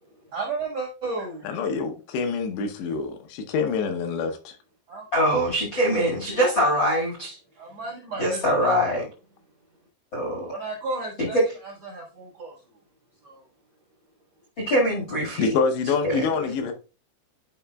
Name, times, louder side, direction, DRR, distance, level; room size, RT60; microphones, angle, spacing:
voice 1, 0.1-1.5 4.9-5.1 7.5-8.4 10.5-12.6 13.2-13.5, right 3 dB, 60° right, -3 dB, 1.7 m, -33 dB
voice 2, 1.4-4.6 15.4-16.7, left 5 dB, 80° left, 5 dB, 2.8 m, -26 dB
voice 3, 5.1-7.4 8.2-9.1 10.1-10.5 11.2-11.5 14.6-15.5 16.0-16.3, equal, 50° left, -3 dB, 1.3 m, -23 dB
11.5 x 4.9 x 2.3 m, 0.33 s
omnidirectional pair, 5.1 m